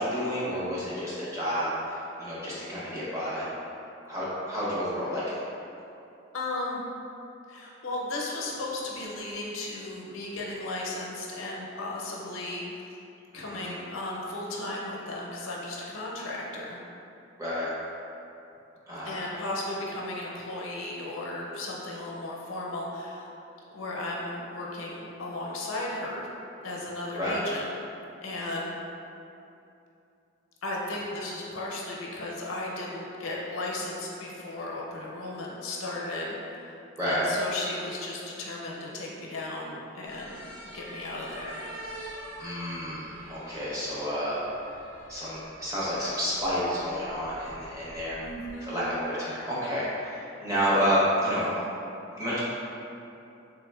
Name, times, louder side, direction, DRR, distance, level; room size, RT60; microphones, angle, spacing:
voice 1, 0.0-3.5 4.0-5.4 13.3-13.8 17.4-17.7 18.9-19.3 27.2-27.4 37.0-37.3 42.4-44.4 45.1-48.2 48.6-51.5 52.1-52.4, equal, 15° right, -9 dB, 0.8 m, -30 dB
voice 2, 6.3-6.8 7.5-12.8 13.3-16.8 19.0-23.3 23.7-26.3 26.6-27.7 28.2-28.8 30.6-36.8 37.1-41.6 48.2-48.7, left 2 dB, 90° left, -3 dB, 0.6 m, -35 dB
sound 1, 40.0-48.5, right 1 dB, 90° right, 1.4 m, -46 dB
3.6 x 3.2 x 2.3 m, 2.7 s
head